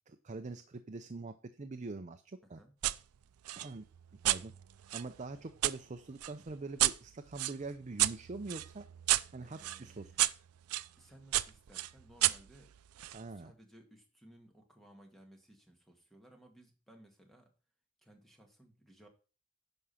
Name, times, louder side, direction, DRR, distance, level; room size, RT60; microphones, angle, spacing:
voice 1, 0.1-2.6 3.6-3.9 4.2-4.5 4.9-8.9 9.3-10.1 13.1-13.5, right 3 dB, 35° right, 8 dB, 0.5 m, -44 dB
voice 2, 2.4-2.7 9.4-10.2 10.9-12.7 13.3-17.5 18.0-19.1, right 1 dB, ahead, 3 dB, 1.8 m, -60 dB
sound 1, 2.8-3.0 3.5-5.8 6.2-10.9 11.3-13.2, right 16 dB, 85° right, 0.4 m, -33 dB
11.0 x 4.9 x 5.6 m, 0.35 s
head